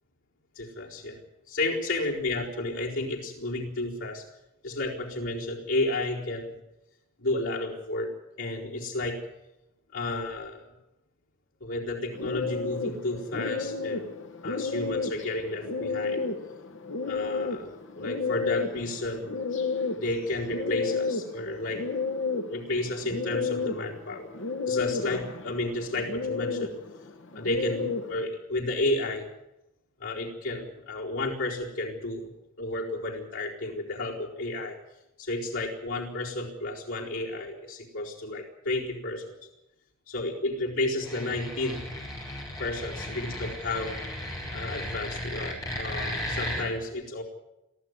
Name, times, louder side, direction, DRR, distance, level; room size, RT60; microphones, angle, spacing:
voice 1, 0.5-1.2 1.5-4.2 4.6-6.6 7.2-8.1 8.4-9.2 9.9-10.7 11.6-14.2 14.4-16.2 17.1-19.3 19.9-21.8 22.5-24.3 24.7-26.7 27.3-29.3 30.0-34.8 35.2-39.4 40.1-41.9 42.6-44.0 44.5-47.2, left 2 dB, 85° left, -4 dB, 4.3 m, -32 dB
sound 1, 12.1-28.2, left 4 dB, 60° left, 1.4 m, -32 dB
sound 2, 41.0-46.6, left 1 dB, 20° left, 6.2 m, -35 dB
22.5 x 14.5 x 9.6 m, 0.92 s
head